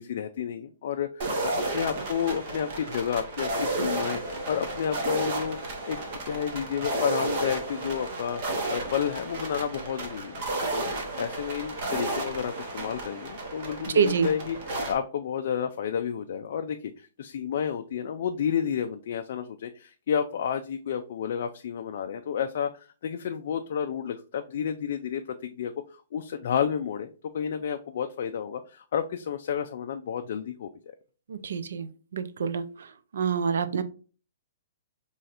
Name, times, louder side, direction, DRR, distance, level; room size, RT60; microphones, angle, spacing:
voice 1, 0.0-5.6 5.9-6.0 6.2-30.9, left 8 dB, 50° left, 6 dB, 0.3 m, -31 dB
sound 1, 1.2-14.9, right 2 dB, 35° right, 0.9 m, -32 dB
voice 2, 13.9-14.3 31.3-32.9 33.1-33.8, right 6 dB, 75° right, 11 dB, 0.5 m, -26 dB
4.2 x 3.1 x 2.4 m, 0.37 s
hypercardioid pair, 175°, 0 cm